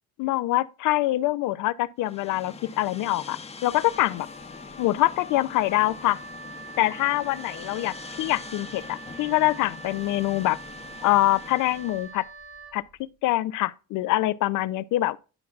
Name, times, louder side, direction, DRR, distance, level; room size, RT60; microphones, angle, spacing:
voice 1, 0.2-4.3 4.8-6.2 6.8-10.6 11.0-12.2 12.7-15.2, left 17 dB, 90° left, 0.5 m, -25 dB
sound 1, 2.0-12.1, left 4 dB, 20° left, 0.7 m, -43 dB
Wind instrument woodwind instrument, 3.7-12.8, right 3 dB, 75° right, 3.3 m, -44 dB
10.5 x 5.8 x 2.4 m
cardioid pair, 90°, 30 cm